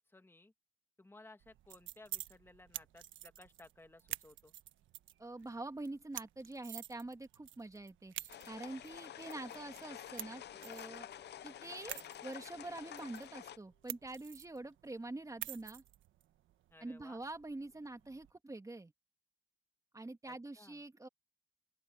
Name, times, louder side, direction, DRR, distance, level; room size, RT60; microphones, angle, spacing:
voice 1, 0.1-0.5 1.0-4.5 16.7-17.2 20.3-20.8, left 2 dB, 10° left, 2.3 m, -59 dB
sound 1, 1.4-18.3, right 12 dB, 80° right, 1.4 m, -50 dB
voice 2, 5.2-11.1 11.4-15.8 16.8-18.9 19.9-21.1, right 2 dB, 15° right, 2.8 m, -46 dB
sound 2, 8.3-13.6, left 11 dB, 60° left, 0.7 m, -49 dB
Acoustic guitar, 10.5-13.9, left 5 dB, 40° left, 5.4 m, -64 dB
open air
cardioid pair, 90°, 20 cm